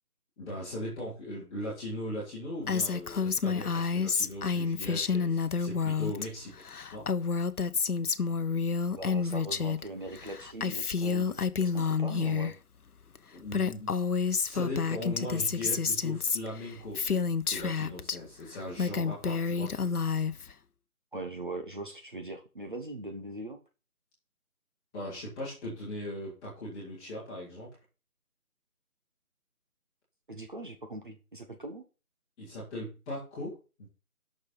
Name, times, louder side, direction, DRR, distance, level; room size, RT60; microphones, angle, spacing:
voice 1, 0.4-6.6 6.9-7.1 13.3-13.9 14.4-19.9 24.9-27.8 32.4-33.9, left 1 dB, 5° left, -9 dB, 1.6 m, -39 dB
Female speech woman speaking, 2.7-6.3 6.5-9.8 10.1-12.5 13.2-13.3 13.5-18.2 18.6-20.5, left 5 dB, 75° left, 1.0 m, -29 dB
voice 2, 8.9-12.6 21.1-23.6 30.3-31.8, right 1 dB, 35° right, 4 dB, 1.1 m, -41 dB
9.5 x 6.4 x 5.4 m, 0.32 s
figure-of-eight pair, 165°, 45 cm